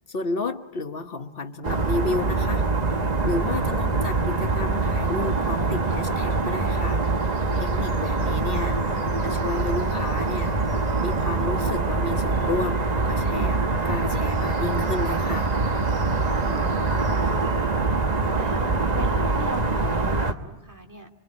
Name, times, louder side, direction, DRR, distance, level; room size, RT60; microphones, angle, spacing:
voice 1, 0.1-2.7 3.2-7.0 7.5-8.8 9.2-10.5 11.0-15.5, left 3 dB, 55° left, 8 dB, 1.4 m, -31 dB
sound 1, 1.6-20.3, right 3 dB, 40° right, 1.2 m, -24 dB
voice 2, 8.7-9.5 16.3-17.4 18.3-21.1, right 1 dB, 15° right, 3 dB, 2.4 m, -40 dB
25.0 x 23.0 x 9.9 m, 0.98 s
omnidirectional pair, 1.1 m